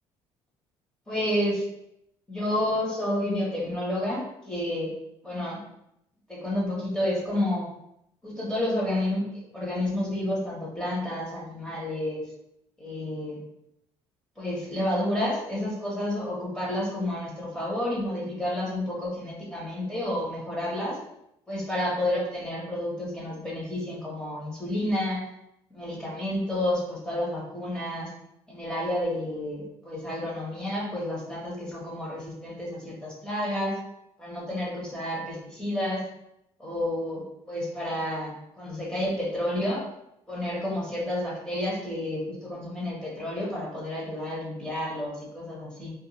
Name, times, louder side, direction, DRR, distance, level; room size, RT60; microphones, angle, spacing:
voice 1, 1.1-1.6 2.3-4.9 5.2-5.6 6.3-7.6 8.2-9.2 9.5-12.2 12.8-13.4 14.4-21.0 21.5-25.2 25.7-28.1 28.5-33.7 34.2-36.0 36.6-37.2 37.5-38.3 38.6-39.8 40.3-45.9, left 1 dB, 5° left, -5 dB, 1.0 m, -30 dB
2.4 x 2.1 x 3.0 m, 0.80 s
cardioid pair, 120°, 11 cm